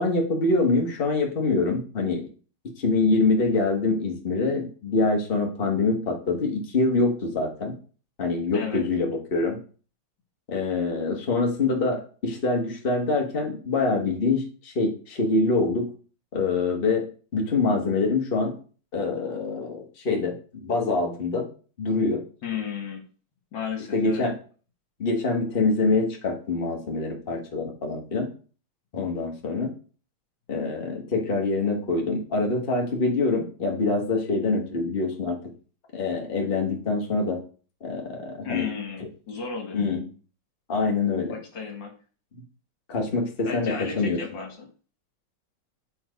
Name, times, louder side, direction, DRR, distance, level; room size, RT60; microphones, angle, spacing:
voice 1, 0.0-2.2 2.8-7.7 8.2-9.6 10.5-15.9 16.3-17.0 17.3-18.5 18.9-21.5 21.8-22.2 23.9-24.3 25.0-28.3 28.9-29.7 30.5-35.4 35.9-37.4 37.8-38.7 39.7-40.0 40.7-41.4 42.9-44.2, left 3 dB, 30° left, 1 dB, 1.5 m, -25 dB
voice 2, 8.5-8.8 22.4-23.0 23.5-24.3 38.4-39.8 41.3-41.9 43.4-44.7, left 6 dB, 65° left, 3 dB, 2.2 m, -34 dB
8.9 x 4.3 x 5.2 m, 0.38 s
omnidirectional pair, 2.2 m